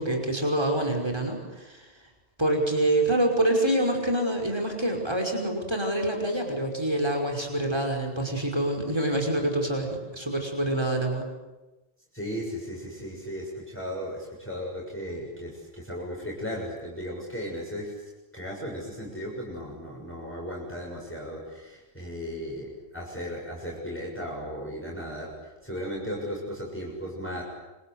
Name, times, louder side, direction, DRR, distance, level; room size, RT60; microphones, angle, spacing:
voice 1, 0.0-1.9 2.4-11.3, right 1 dB, 20° right, 1 dB, 5.6 m, -26 dB
voice 2, 12.1-18.0 18.3-27.4, equal, 10° left, -3 dB, 7.0 m, -36 dB
27.0 x 26.5 x 8.3 m, 1.1 s
omnidirectional pair, 1.2 m